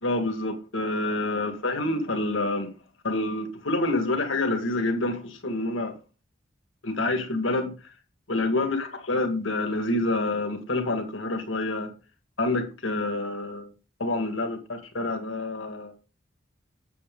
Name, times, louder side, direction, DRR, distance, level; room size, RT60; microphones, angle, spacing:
voice 1, 0.0-2.7 3.0-6.0 6.8-7.8 8.3-11.9 12.4-13.7 14.0-16.0, left 2 dB, 90° left, 2.0 m, -27 dB
8.5 x 8.4 x 3.8 m
head